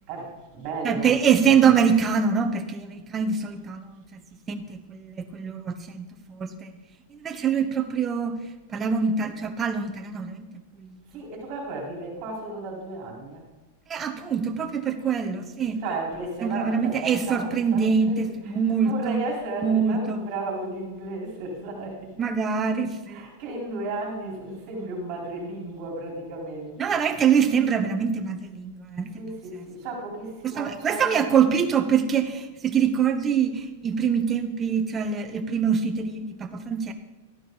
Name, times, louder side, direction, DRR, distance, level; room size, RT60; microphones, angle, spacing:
voice 1, 0.1-1.2 11.1-13.4 15.8-22.1 23.1-26.9 29.2-31.5, right 2 dB, 40° right, -2 dB, 4.1 m, -34 dB
voice 2, 0.8-4.2 4.5-6.7 7.1-8.4 8.7-10.5 10.8-11.0 13.9-15.8 16.4-19.2 19.6-20.2 22.2-23.3 26.8-29.1 29.5-29.7 30.4-36.9, right 6 dB, 20° right, 8 dB, 0.9 m, -24 dB
13.0 x 9.2 x 4.0 m, 1.2 s
supercardioid pair, 145°, 0 cm